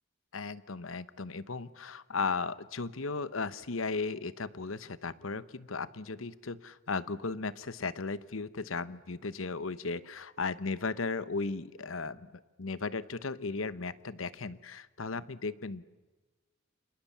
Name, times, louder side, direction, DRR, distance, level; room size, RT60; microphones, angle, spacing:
voice 1, 0.3-12.3 12.6-15.8, left 4 dB, 80° left, 15 dB, 1.0 m, -36 dB
29.0 x 26.0 x 7.3 m, 1.3 s
head